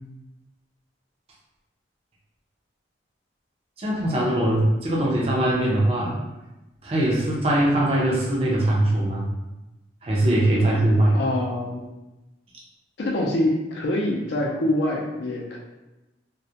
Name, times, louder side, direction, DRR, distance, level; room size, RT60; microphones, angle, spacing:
voice 1, 3.8-6.2 6.8-9.3 10.0-11.2, right 1 dB, 30° right, -4 dB, 0.5 m, -21 dB
voice 2, 11.1-11.9 13.0-15.6, left 1 dB, 65° left, -2 dB, 0.4 m, -25 dB
2.3 x 2.0 x 2.7 m, 1.0 s
head